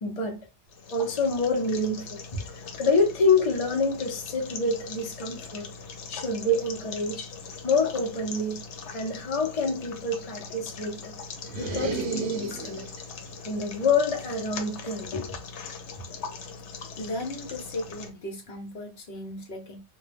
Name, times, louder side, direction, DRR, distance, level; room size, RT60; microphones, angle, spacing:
voice 1, 0.0-0.4 0.9-5.7 6.1-7.3 7.6-8.6 8.9-11.2 11.6-12.9 13.4-15.3, left 3 dB, 40° left, 0.6 m, -27 dB
sound 1, 0.7-18.1, left 5 dB, 85° left, 0.9 m, -41 dB
sound 2, 11.4-13.1, right 3 dB, 60° right, 0.6 m, -34 dB
voice 2, 17.0-19.8, left 1 dB, 65° left, 1.0 m, -36 dB
2.2 x 2.1 x 3.2 m
omnidirectional pair, 1.2 m